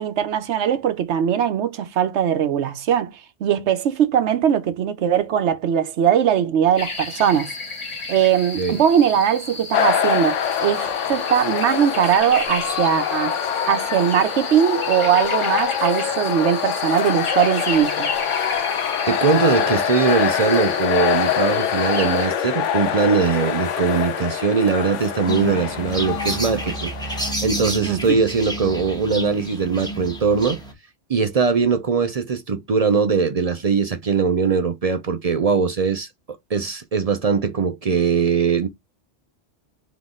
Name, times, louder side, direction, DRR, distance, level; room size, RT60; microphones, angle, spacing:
voice 1, 0.0-7.5 8.1-13.4 13.7-18.1 27.8-28.2, right 9 dB, 70° right, 0.9 m, -20 dB
sound 1, 6.8-22.3, left 3 dB, 25° left, 0.9 m, -33 dB
sound 2, 9.7-27.3, left 8 dB, 75° left, 1.0 m, -24 dB
voice 2, 19.1-30.6 31.1-36.1 36.5-38.7, right 5 dB, 50° right, 0.4 m, -21 dB
sound 3, 25.3-30.7, right 1 dB, 5° left, 1.2 m, -30 dB
3.9 x 3.1 x 3.6 m
omnidirectional pair, 1.3 m